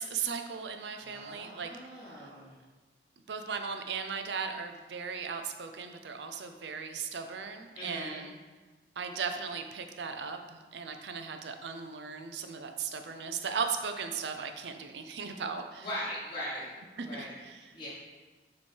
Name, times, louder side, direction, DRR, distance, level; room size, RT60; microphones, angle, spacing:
voice 1, 0.0-2.3 3.3-8.4 9.0-15.9 17.0-17.5, right 6 dB, 75° right, 6 dB, 0.5 m, -37 dB
voice 2, 1.0-2.6 7.7-8.2 15.8-16.7 17.0-17.9, equal, 25° left, -8 dB, 1.1 m, -40 dB
7.1 x 3.1 x 4.5 m, 1.3 s
head